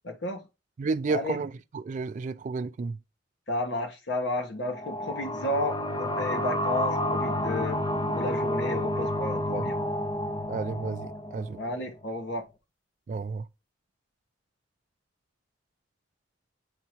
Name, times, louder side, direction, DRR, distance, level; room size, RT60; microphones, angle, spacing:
voice 1, 0.0-0.4 1.1-1.4 3.5-7.8 8.1-9.8 11.6-12.4, left 1 dB, 65° left, 1.2 m, -32 dB
voice 2, 0.8-3.0 9.6-9.7 10.5-11.6 13.1-13.5, right 4 dB, 40° right, 0.3 m, -32 dB
sound 1, 4.6-12.0, left 1 dB, 25° left, 0.6 m, -30 dB
7.9 x 2.8 x 4.3 m
head